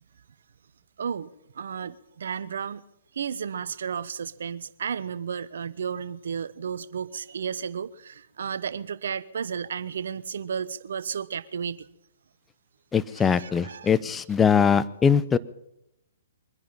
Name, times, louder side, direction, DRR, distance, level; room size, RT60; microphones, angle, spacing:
voice 1, 1.0-2.8 3.1-11.9 13.2-13.9, right 7 dB, 65° right, 16 dB, 0.9 m, -33 dB
voice 2, 12.9-15.4, left 6 dB, 15° left, 15 dB, 0.7 m, -21 dB
23.5 x 10.5 x 5.7 m, 0.82 s
figure-of-eight pair, 125°, 0 cm